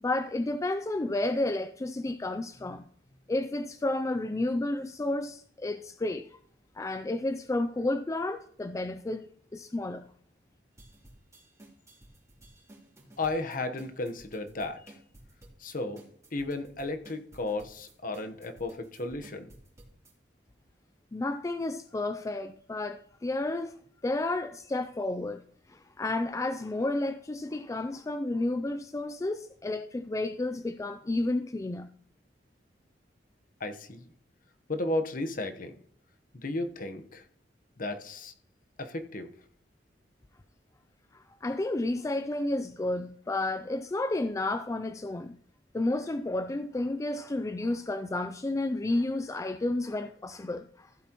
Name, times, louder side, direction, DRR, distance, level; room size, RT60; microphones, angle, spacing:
voice 1, 0.0-2.9 3.3-6.3 6.8-10.0 21.1-23.7 24.0-25.4 25.7-31.9 41.1-45.4 45.7-50.9, left 2 dB, 20° left, 0.3 m, -31 dB
sound 1, 10.8-20.1, right 1 dB, 20° right, 3.4 m, -54 dB
voice 2, 13.2-14.8 15.6-16.0 16.3-19.5 33.6-34.0 34.7-35.7 36.3-37.2 37.8-38.3 38.8-39.3, left 2 dB, 50° left, 1.1 m, -34 dB
15.5 x 8.2 x 3.0 m
head